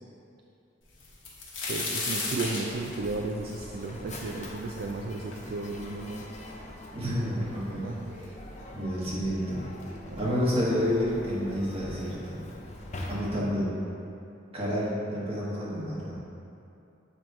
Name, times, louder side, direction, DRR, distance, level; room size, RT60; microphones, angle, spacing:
sound 1, 1.0-4.8 5.3-5.4 6.2-6.3 6.5-7.2 8.1-8.2 8.6-8.8, left 3 dB, 80° left, 1.3 m, -34 dB
voice 1, 1.7-6.3 7.8-8.1 10.1-10.2, right 3 dB, 50° right, 0 dB, 0.3 m, -34 dB
Mechanisms, 2.5-13.6, left 1 dB, 40° left, 0.6 m, -43 dB
voice 2, 6.9-7.9 8.7-9.7 10.2-12.4 13.1-13.7 14.5-16.2, equal, 30° right, -7 dB, 1.3 m, -29 dB
7.3 x 3.0 x 4.6 m, 2.7 s
head